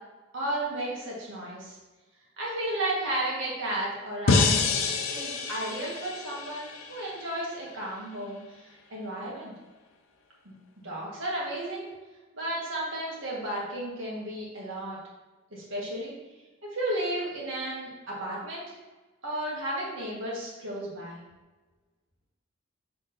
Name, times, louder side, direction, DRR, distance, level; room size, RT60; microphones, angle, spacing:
voice 1, 0.3-1.8 2.4-4.6 5.1-9.5 10.5-10.6 10.8-11.9 12.3-15.0 15.5-16.1 16.6-18.8 19.2-21.2, right 1 dB, 70° right, -5 dB, 1.8 m, -33 dB
sound 1, 4.3-7.4, left 4 dB, 85° left, 0.7 m, -27 dB
6.2 x 3.8 x 4.0 m, 1.2 s
head